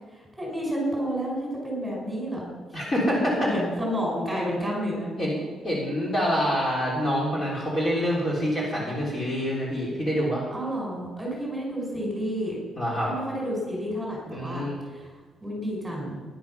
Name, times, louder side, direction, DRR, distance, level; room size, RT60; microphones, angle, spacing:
voice 1, 0.4-2.5 3.4-5.1 10.5-12.6 13.1-14.6 14.9-15.1 15.4-16.2, equal, 10° right, -2 dB, 5.3 m, -30 dB
voice 2, 2.7-3.5 5.2-5.3 5.6-10.4 12.8-13.1 14.3-14.8, equal, 25° left, -5 dB, 3.7 m, -26 dB
17.5 x 11.0 x 5.7 m, 1.4 s
cardioid pair, 165°, 0 cm